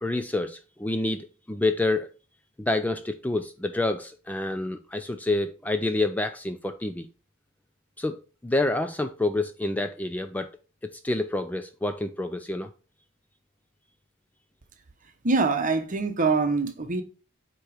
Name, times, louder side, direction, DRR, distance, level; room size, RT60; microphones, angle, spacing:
voice 1, 0.0-2.1 2.6-7.1 8.0-10.5 10.8-12.7, left 2 dB, 10° left, 0.3 m, -28 dB
voice 2, 15.2-17.0, right 3 dB, 40° right, 0.9 m, -24 dB
8.0 x 3.0 x 4.9 m
head